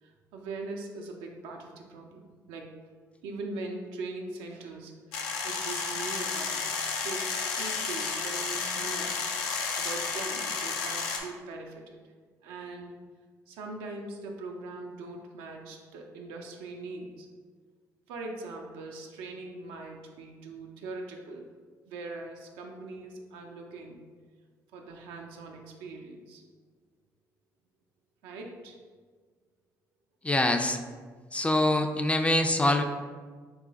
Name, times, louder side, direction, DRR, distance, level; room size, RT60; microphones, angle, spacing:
voice 1, 0.0-2.7 3.2-6.7 7.0-9.2 9.8-12.0 12.4-12.9 13.5-17.3 18.1-21.5 21.9-24.0 24.7-26.4 28.2-28.8, right 3 dB, 85° right, 2 dB, 0.4 m, -41 dB
sound 1, 5.1-11.2, left 5 dB, 85° left, 0.4 m, -32 dB
voice 2, 30.2-30.8 31.3-32.8, left 1 dB, 15° left, 5 dB, 0.3 m, -24 dB
3.1 x 2.4 x 3.8 m, 1.5 s
hypercardioid pair, 55°, 8 cm